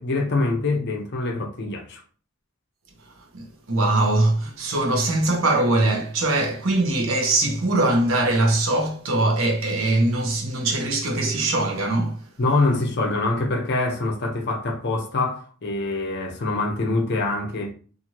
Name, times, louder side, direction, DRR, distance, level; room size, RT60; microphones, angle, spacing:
voice 1, 0.0-2.0 12.4-17.7, left 2 dB, 50° left, 0.6 m, -24 dB
voice 2, 3.0-12.3, right 2 dB, 60° right, 0.7 m, -22 dB
2.7 x 2.5 x 2.9 m
head